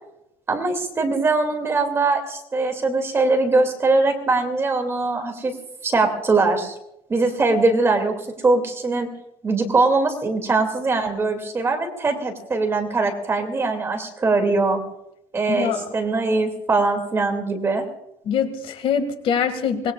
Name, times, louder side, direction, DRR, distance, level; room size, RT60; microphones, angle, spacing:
voice 1, 0.5-5.5 5.8-6.7 7.1-8.1 8.4-9.1 9.4-14.8 15.3-17.8, right 3 dB, 20° right, 4 dB, 2.6 m, -21 dB
voice 2, 15.5-15.9 18.3-19.9, left 7 dB, 55° left, 7 dB, 2.1 m, -23 dB
24.5 x 20.5 x 2.4 m, 0.83 s
cardioid pair, 145°, 12 cm